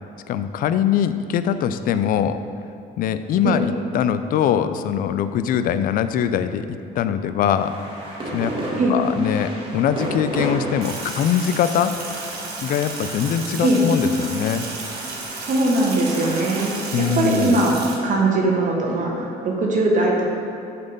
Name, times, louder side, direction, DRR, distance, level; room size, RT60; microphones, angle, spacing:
voice 1, 0.3-2.4 3.0-7.7 8.3-8.6 8.9-11.9 12.6-14.7 16.9-17.5, left 9 dB, 55° left, 11 dB, 0.4 m, -22 dB
sound 1, 7.5-18.9, right 1 dB, 30° right, 1.6 m, -34 dB
Sink (filling or washing), 10.8-17.9, right 3 dB, 65° right, 1.2 m, -33 dB
voice 2, 15.4-17.8 18.0-20.5, right 2 dB, 50° right, -2 dB, 1.2 m, -21 dB
6.7 x 4.3 x 5.3 m, 2.7 s
cardioid pair, 110°, 17 cm